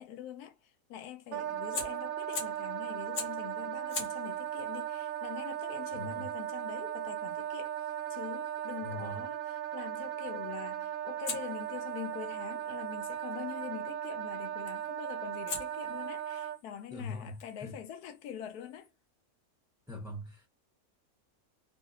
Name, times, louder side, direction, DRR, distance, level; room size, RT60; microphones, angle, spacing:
voice 1, 0.0-7.8 8.1-18.9, left 9 dB, 80° left, 1.1 m, -44 dB
Wind instrument woodwind instrument, 1.3-16.6, right 11 dB, 70° right, 1.0 m, -37 dB
Fire, 1.7-2.7 3.1-3.5 3.9-8.8 11.2-13.4 14.7-15.0 15.5-18.9, left 4 dB, 55° left, 1.1 m, -45 dB
voice 2, 5.9-6.3 8.8-9.2 16.9-17.8 19.9-20.5, left 2 dB, 5° right, 0.6 m, -42 dB
3.1 x 2.3 x 2.7 m
omnidirectional pair, 1.6 m